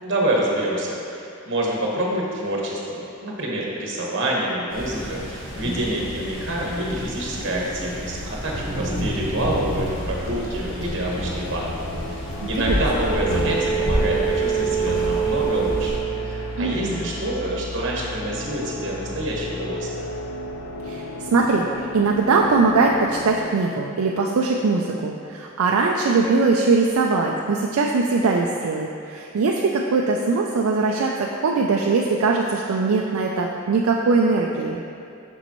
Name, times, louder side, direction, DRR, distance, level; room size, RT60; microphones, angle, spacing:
voice 1, 0.0-20.1, right 1 dB, 55° right, -3 dB, 1.2 m, -27 dB
sound 1, 4.7-16.0, equal, 65° left, 1.3 m, -29 dB
sound 2, 10.8-23.5, right 4 dB, 85° left, 0.6 m, -29 dB
voice 2, 16.6-17.1 20.8-34.8, right 4 dB, 85° right, 0 dB, 0.4 m, -21 dB
6.8 x 6.3 x 3.0 m, 2.6 s
head